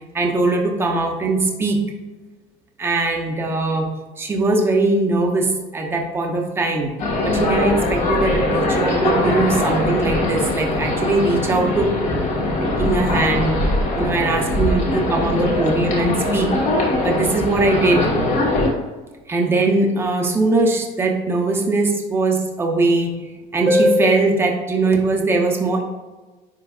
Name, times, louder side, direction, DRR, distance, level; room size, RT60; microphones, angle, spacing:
voice 1, 0.1-1.8 2.8-3.9 4.2-6.9 7.2-11.8 12.1-12.2 12.8-13.5 14.0-16.5 17.0-18.1 19.3-25.8, right 2 dB, 15° right, 1 dB, 0.8 m, -20 dB
sound 1, 7.0-18.7, left 2 dB, 45° left, 1.5 m, -21 dB
10.0 x 4.6 x 2.4 m, 1.2 s
cardioid pair, 170°, 16 cm